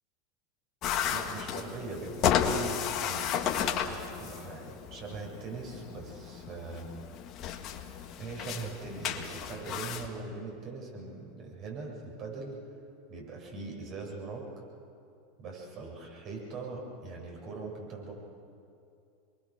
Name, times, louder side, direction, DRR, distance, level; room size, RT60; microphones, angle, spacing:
sound 1, 0.8-10.1, left 8 dB, 45° left, 1.9 m, -33 dB
voice 1, 1.1-6.9 8.2-12.6 13.1-14.5 15.4-18.1, right 3 dB, 45° right, -1 dB, 7.6 m, -41 dB
27.0 x 22.5 x 6.7 m, 2.6 s
hypercardioid pair, 90°, 0 cm